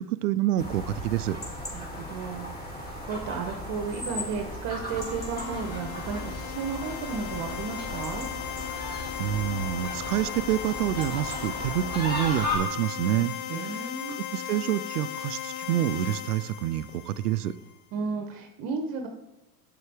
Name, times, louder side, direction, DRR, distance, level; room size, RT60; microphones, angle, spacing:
voice 1, 0.0-1.4 9.2-13.3 14.2-17.5, right 12 dB, 80° right, 16 dB, 0.6 m, -27 dB
sound 1, 0.6-12.6, left 1 dB, 20° left, 2.5 m, -36 dB
voice 2, 1.7-8.3 13.5-14.2 17.9-19.1, right 5 dB, 50° right, 5 dB, 0.9 m, -34 dB
sound 2, 4.9-17.6, left 11 dB, 70° left, 0.7 m, -37 dB
8.4 x 6.6 x 3.4 m, 1.1 s
hypercardioid pair, 80°, 46 cm